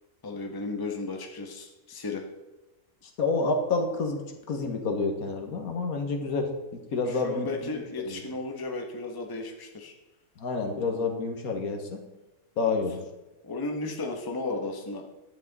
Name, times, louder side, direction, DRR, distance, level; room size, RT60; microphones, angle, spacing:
voice 1, 0.2-2.2 7.1-9.9 12.6-12.8 13.4-15.1, left 3 dB, 15° left, 2 dB, 1.0 m, -34 dB
voice 2, 3.2-4.2 4.5-7.5 7.7-8.2 10.4-12.0 12.6-13.0, left 3 dB, 70° left, 3 dB, 1.6 m, -29 dB
11.0 x 8.3 x 4.0 m, 1.0 s
omnidirectional pair, 1.6 m